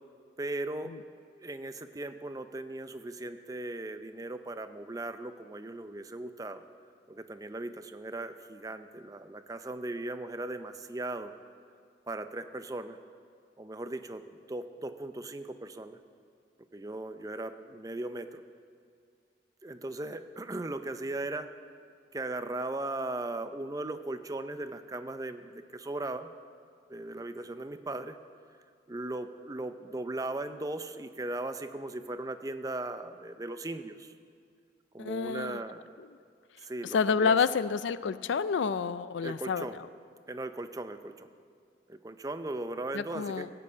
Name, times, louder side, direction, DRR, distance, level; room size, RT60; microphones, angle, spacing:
voice 1, 0.4-0.9 1.3-6.6 7.1-11.3 12.1-13.0 13.6-16.0 16.7-18.4 19.6-21.5 22.1-26.3 26.9-28.2 28.9-34.1 34.9-35.8 36.6-37.4 39.2-39.8 40.3-41.3 41.9-43.5, right 2 dB, 20° right, 9 dB, 0.5 m, -38 dB
voice 2, 35.0-35.6 36.8-39.9 42.9-43.5, left 5 dB, 75° left, 15 dB, 0.4 m, -29 dB
17.0 x 6.9 x 8.5 m, 2.2 s
head